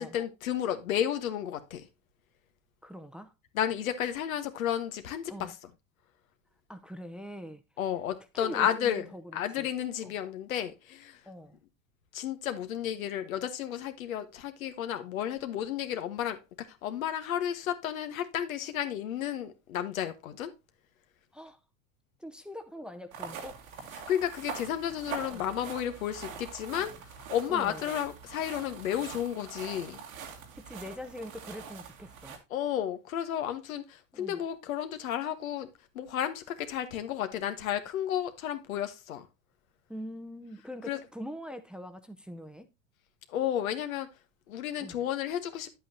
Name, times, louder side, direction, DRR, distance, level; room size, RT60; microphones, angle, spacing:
voice 1, 0.0-1.9 3.5-5.5 7.8-9.1 9.3-11.2 12.1-20.5 24.1-26.9 27.3-30.0 32.5-35.7 35.9-39.3 40.9-41.0 43.3-44.1 44.5-45.7, left 10 dB, 85° left, 1.3 m, -32 dB
voice 2, 2.8-3.3 5.3-5.5 6.7-7.6 8.4-9.7 10.0-10.1 11.3-11.6 21.3-21.6 22.2-23.6 25.3-25.5 27.5-27.9 30.6-32.4 34.1-34.4 39.9-42.7 44.8-45.0, equal, ahead, 0.6 m, -43 dB
sound 1, 23.1-32.4, right 6 dB, 90° right, 2.3 m, -43 dB
9.0 x 8.3 x 2.7 m
hypercardioid pair, 105°, 40 cm